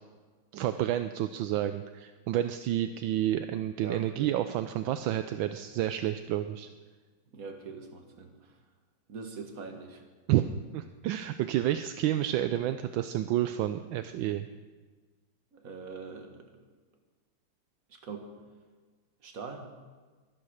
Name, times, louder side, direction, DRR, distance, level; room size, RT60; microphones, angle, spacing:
voice 1, 0.5-6.7 10.3-10.5 10.7-14.5, right 12 dB, 80° right, 10 dB, 1.3 m, -30 dB
voice 2, 3.8-4.3 7.3-8.5 9.1-10.1 15.5-16.5 17.9-18.3 19.2-19.7, right 4 dB, 45° right, 4 dB, 2.0 m, -43 dB
23.0 x 8.7 x 6.5 m, 1.4 s
omnidirectional pair, 2.2 m